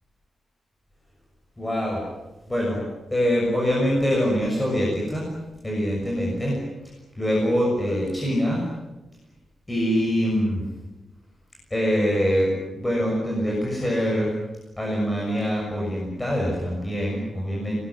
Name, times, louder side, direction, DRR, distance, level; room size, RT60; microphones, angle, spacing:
voice 1, 1.6-2.0 2.5-2.8 3.1-5.2 5.6-6.6 7.2-8.6 9.7-10.6 11.7-14.3 14.8-17.8, equal, 10° left, -3 dB, 6.6 m, -24 dB
25.5 x 20.0 x 9.7 m, 1.0 s
wide cardioid pair, 160°, 0 cm